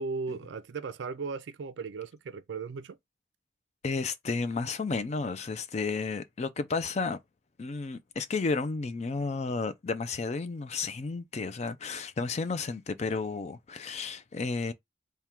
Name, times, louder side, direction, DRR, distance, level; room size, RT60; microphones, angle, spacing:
voice 1, 0.0-3.0, right 4 dB, 70° right, 0.4 m, -36 dB
voice 2, 3.8-7.2 7.6-14.7, left 4 dB, 35° left, 0.4 m, -32 dB
3.6 x 2.2 x 4.4 m
head